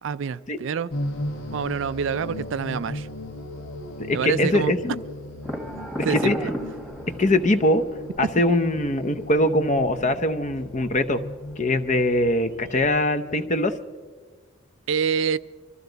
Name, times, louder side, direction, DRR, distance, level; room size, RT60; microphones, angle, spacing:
voice 1, 0.0-0.9 1.5-3.1 4.1-4.7 6.0-6.5 14.9-15.4, right 6 dB, 65° right, 0.4 m, -26 dB
sound 1, 0.9-13.7, left 1 dB, 90° left, 1.5 m, -37 dB
voice 2, 4.1-5.0 6.1-6.3 7.2-7.8 8.2-11.2 11.6-13.7, left 1 dB, 35° left, 0.7 m, -22 dB
sound 2, 5.4-13.0, equal, ahead, 1.5 m, -37 dB
24.0 x 14.0 x 4.0 m
head